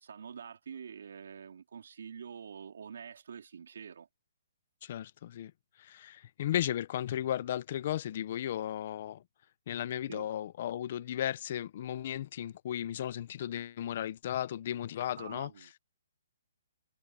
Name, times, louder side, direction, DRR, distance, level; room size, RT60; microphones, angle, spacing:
voice 1, 0.0-4.1 10.1-10.3 15.2-15.9, right 7 dB, 60° right, 2.9 m, -46 dB
voice 2, 4.8-5.5 5.8-9.2 9.7-15.5, left 11 dB, 35° left, 0.7 m, -35 dB
hypercardioid pair, 175°, 0 cm